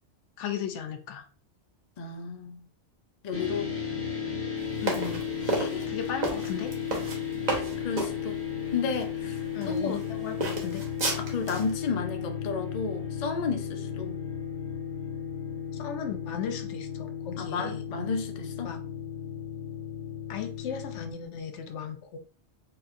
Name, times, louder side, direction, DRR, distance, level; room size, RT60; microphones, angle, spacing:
voice 1, 0.4-1.2 4.8-5.2 5.9-6.7 9.5-10.8 15.7-17.9 18.6-18.8 20.3-22.2, left 8 dB, 75° left, 0.9 m, -36 dB
voice 2, 2.0-2.6 3.2-3.7 5.4-5.9 7.5-8.4 8.7-10.0 11.2-14.2 17.4-18.7, left 5 dB, 55° left, 0.4 m, -33 dB
sound 1, 3.3-21.1, left 8 dB, 15° left, 0.7 m, -35 dB
sound 2, 4.8-8.1 8.9-9.1 9.6-10.1 10.4-11.7, right 2 dB, 40° right, 0.8 m, -31 dB
4.3 x 2.5 x 2.6 m
omnidirectional pair, 1.2 m